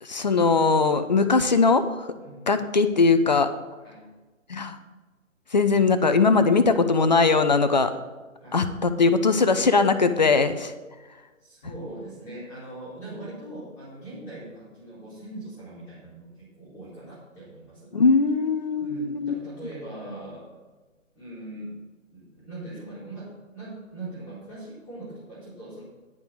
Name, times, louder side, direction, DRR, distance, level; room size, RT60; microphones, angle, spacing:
voice 1, 0.0-1.8 2.5-3.5 4.5-4.8 5.5-7.9 8.5-10.7 17.9-19.3, left 4 dB, 35° left, 10 dB, 0.5 m, -20 dB
voice 2, 2.2-2.5 3.8-4.1 8.4-8.7 11.4-17.9 18.8-20.5 21.2-21.8 22.1-25.8, right 1 dB, 5° left, -11 dB, 2.0 m, -41 dB
10.5 x 4.7 x 7.9 m, 1.2 s
figure-of-eight pair, 140°, 40 cm